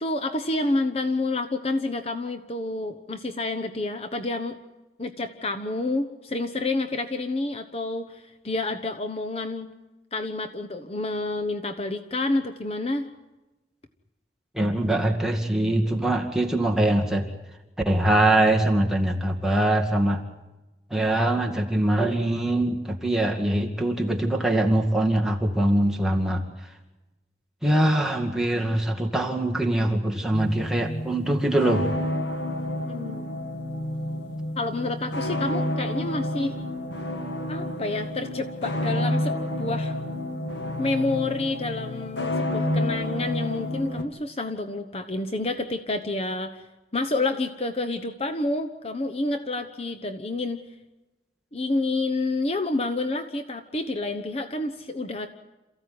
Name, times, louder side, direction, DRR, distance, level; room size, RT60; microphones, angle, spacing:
voice 1, 0.0-4.5 5.0-9.7 10.1-13.1 32.9-33.6 34.6-36.6 37.5-40.0 40.8-46.6 46.9-50.6 51.5-55.3, left 2 dB, 35° left, 7 dB, 1.0 m, -29 dB
voice 2, 14.5-17.3 17.9-20.2 20.9-26.7 27.6-31.9, right 1 dB, 5° right, 0 dB, 2.2 m, -23 dB
sound 1, 30.3-44.0, left 1 dB, 80° left, 2.2 m, -30 dB
28.0 x 15.5 x 9.6 m, 1.1 s
head